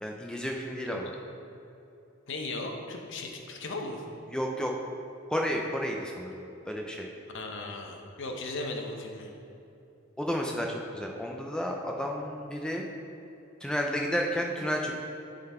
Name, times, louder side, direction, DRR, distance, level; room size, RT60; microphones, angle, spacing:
voice 1, 0.0-1.1 4.3-4.7 5.3-7.1 10.2-12.8 13.6-14.9, equal, 5° left, 0 dB, 0.4 m, -32 dB
voice 2, 0.8-1.2 2.3-4.0 7.3-9.3, left 2 dB, 65° left, 2 dB, 0.9 m, -37 dB
11.0 x 3.9 x 4.3 m, 2.9 s
head